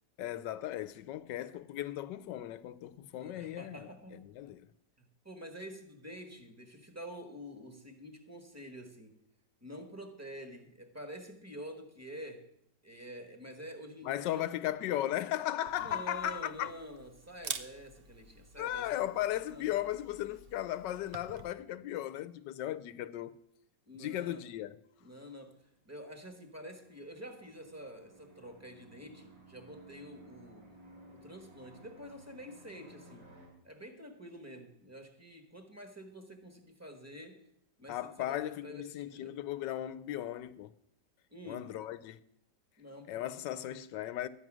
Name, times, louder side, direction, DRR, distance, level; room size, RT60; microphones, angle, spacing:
voice 1, 0.2-4.7 14.0-16.7 18.6-23.4 24.0-24.8 37.9-40.7 41.5-42.2 43.1-44.3, left 13 dB, 85° left, 1.3 m, -36 dB
voice 2, 3.2-4.3 5.0-9.2 9.6-12.5 12.8-14.5 15.8-18.9 19.5-19.7 23.9-24.4 25.0-25.6 25.8-30.8 31.1-33.4 33.6-37.5 37.8-39.4 41.3-41.7 42.8-43.2, equal, 10° right, 1.1 m, -48 dB
Camera, 15.7-21.5, right 6 dB, 60° right, 0.6 m, -47 dB
sound 1, 26.1-33.5, right 2 dB, 85° right, 4.7 m, -57 dB
12.0 x 9.2 x 6.1 m
omnidirectional pair, 1.9 m